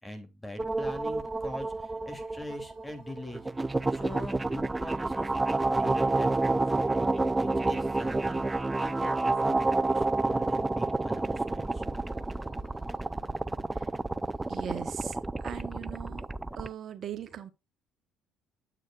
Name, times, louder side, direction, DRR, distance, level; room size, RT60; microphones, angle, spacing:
voice 1, 0.0-11.8, left 1 dB, 10° left, 2.9 m, -43 dB
sound 1, 0.6-16.7, right 2 dB, 15° right, 0.5 m, -29 dB
sound 2, 0.8-13.4, left 3 dB, 55° left, 4.4 m, -64 dB
voice 2, 14.5-16.2 16.6-17.5, right 9 dB, 50° right, 1.1 m, -39 dB
9.0 x 7.9 x 2.4 m
supercardioid pair, 70°, 0 cm